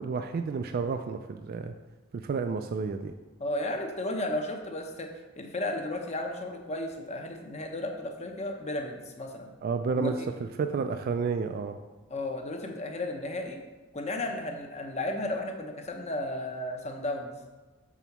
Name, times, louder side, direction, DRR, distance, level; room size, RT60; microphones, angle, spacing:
voice 1, 0.0-1.7 2.1-3.1 9.6-11.8, right 4 dB, 45° right, 7 dB, 0.3 m, -31 dB
voice 2, 3.4-5.1 5.4-9.5 10.0-10.3 12.1-13.6 13.9-17.3, left 1 dB, 30° left, 3 dB, 0.8 m, -34 dB
6.1 x 3.9 x 5.8 m, 1.2 s
head